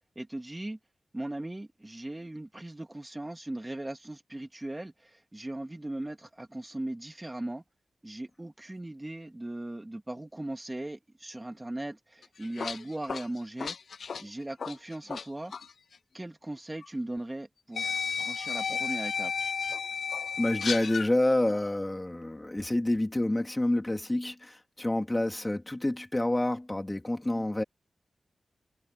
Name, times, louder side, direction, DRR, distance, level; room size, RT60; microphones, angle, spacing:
voice 1, 0.2-0.8 1.1-7.6 8.0-13.8 14.2-15.5 16.1-19.3, right 1 dB, 15° right, 2.3 m, -38 dB
sound 1, 12.2-15.2 15.5-15.7 16.8-16.9 17.7-21.1, left 6 dB, 75° left, 0.4 m, -33 dB
voice 2, 20.4-27.6, left 1 dB, 15° left, 3.3 m, -28 dB
wide cardioid pair, 120°, 0 cm